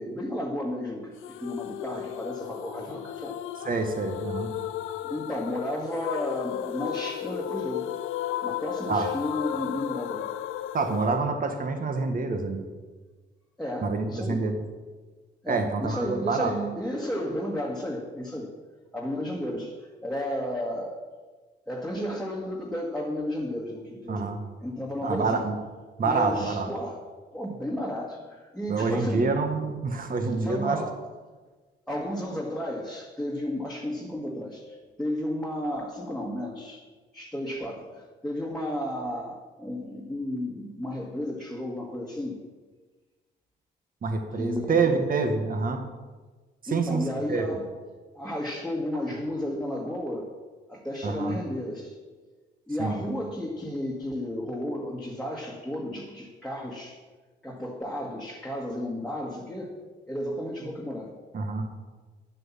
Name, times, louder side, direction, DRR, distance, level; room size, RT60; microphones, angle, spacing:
voice 1, 0.0-3.4 5.0-8.0 8.4-10.3 13.6-14.4 15.4-18.5 18.9-21.0 21.7-24.3 24.6-25.5 26.0-27.0 27.3-29.4 30.4-31.0 31.9-36.8 37.1-42.4 44.3-45.1 46.7-47.7 48.1-50.3 50.7-52.0 52.7-57.0 57.4-59.7 60.1-61.1, left 1 dB, 5° left, -3 dB, 1.8 m, -33 dB
sound 1, 1.2-12.2, left 12 dB, 90° left, 0.5 m, -35 dB
voice 2, 3.6-4.5 8.9-9.1 10.7-12.7 13.8-14.6 15.5-16.5 24.1-24.4 25.0-25.5 26.0-26.7 28.7-30.8 44.0-45.8 46.6-47.0 47.3-47.4 51.0-51.4 52.8-53.0 61.3-61.7, right 4 dB, 45° right, 6 dB, 1.6 m, -27 dB
9.9 x 7.7 x 7.4 m, 1.4 s
cardioid pair, 90°, 20 cm